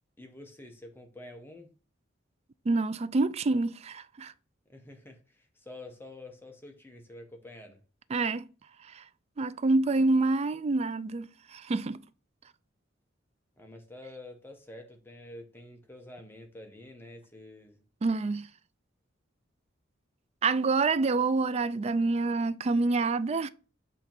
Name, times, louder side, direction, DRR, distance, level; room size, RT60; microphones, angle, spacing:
voice 1, 0.2-1.7 4.7-7.8 13.6-17.8, left 1 dB, 10° left, 0.9 m, -48 dB
voice 2, 2.7-4.3 8.1-8.5 8.8-9.0 9.4-12.0 18.0-18.5 20.4-23.5, right 3 dB, 35° right, 0.3 m, -27 dB
7.9 x 2.9 x 4.4 m
head